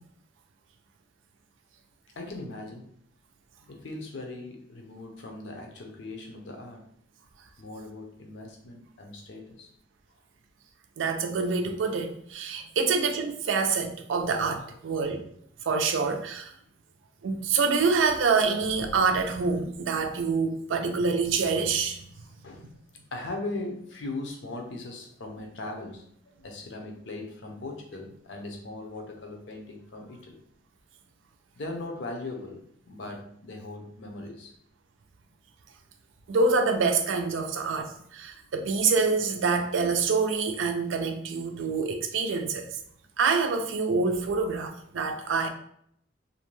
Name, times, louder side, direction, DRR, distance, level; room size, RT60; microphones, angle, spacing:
voice 1, 2.2-2.9 3.7-6.8 7.6-9.7 22.4-22.7 23.1-30.4 31.6-34.5, left 2 dB, 70° left, 2 dB, 0.6 m, -39 dB
voice 2, 11.0-15.2 15.7-16.5 17.2-22.0 36.3-42.7 43.2-45.5, right 4 dB, 85° right, 5 dB, 0.4 m, -26 dB
2.6 x 2.1 x 3.0 m, 0.69 s
head